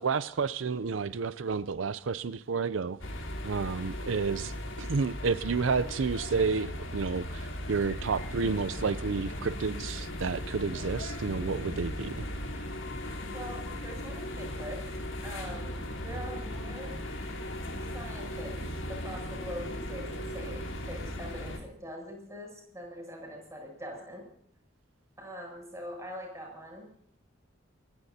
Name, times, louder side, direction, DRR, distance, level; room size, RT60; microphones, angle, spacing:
voice 1, 0.0-3.0 3.4-4.5 4.8-12.3, right 5 dB, 80° right, 0.5 m, -30 dB
sound 1, 3.0-21.6, left 1 dB, 80° left, 3.7 m, -37 dB
voice 2, 13.3-14.8 15.2-17.0 17.9-18.6 18.9-24.2 25.2-26.9, equal, 15° right, 7.9 m, -43 dB
28.0 x 16.5 x 2.8 m
head